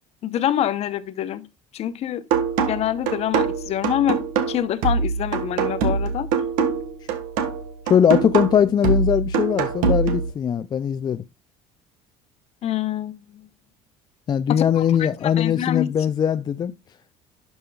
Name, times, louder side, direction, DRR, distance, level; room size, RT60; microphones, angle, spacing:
voice 1, 0.2-1.4 1.7-2.2 2.6-4.2 4.5-6.3 12.6-13.4 14.5-15.9, left 11 dB, 50° left, 0.9 m, -26 dB
sound 1, 2.3-10.3, right 5 dB, 80° right, 1.6 m, -23 dB
voice 2, 7.9-11.2 14.3-16.7, left 8 dB, 30° left, 0.4 m, -20 dB
11.5 x 5.4 x 2.3 m
cardioid pair, 110°, 14 cm